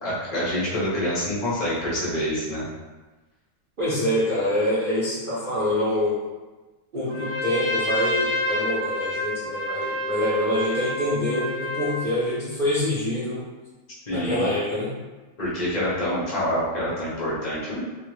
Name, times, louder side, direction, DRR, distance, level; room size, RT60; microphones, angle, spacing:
voice 1, 0.0-2.7 14.1-14.5 15.4-17.8, equal, 60° left, -8 dB, 0.4 m, -26 dB
voice 2, 3.8-6.2 6.9-13.4 14.1-14.9, left 1 dB, 85° right, -12 dB, 0.4 m, -25 dB
Trumpet, 7.0-12.1, left 1 dB, 35° right, 0.9 m, -28 dB
3.4 x 2.3 x 3.1 m, 1.2 s
omnidirectional pair, 2.3 m